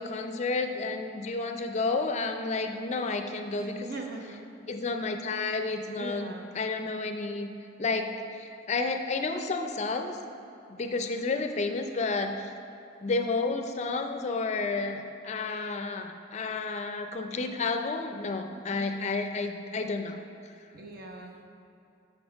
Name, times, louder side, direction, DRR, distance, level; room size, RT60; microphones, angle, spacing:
voice 1, 0.0-3.9 4.7-7.5 7.8-10.2 10.7-12.5 13.0-20.2, left 3 dB, 35° left, 6 dB, 0.4 m, -31 dB
voice 2, 3.6-4.4 6.0-6.5 11.1-11.4 18.5-18.9 20.7-21.3, right 2 dB, 50° right, 1 dB, 1.0 m, -41 dB
6.7 x 6.3 x 5.8 m, 2.7 s
head